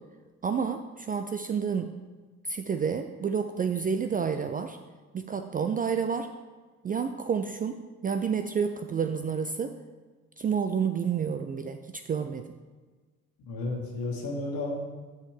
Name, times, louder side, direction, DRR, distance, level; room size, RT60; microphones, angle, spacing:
voice 1, 0.4-1.9 2.4-4.8 5.1-6.3 6.8-9.7 10.4-12.4, right 6 dB, 25° right, 8 dB, 0.3 m, -29 dB
voice 2, 13.4-14.8, left 2 dB, 60° left, 0 dB, 1.6 m, -32 dB
9.8 x 5.7 x 3.3 m, 1.3 s
figure-of-eight pair, 40°, 40 cm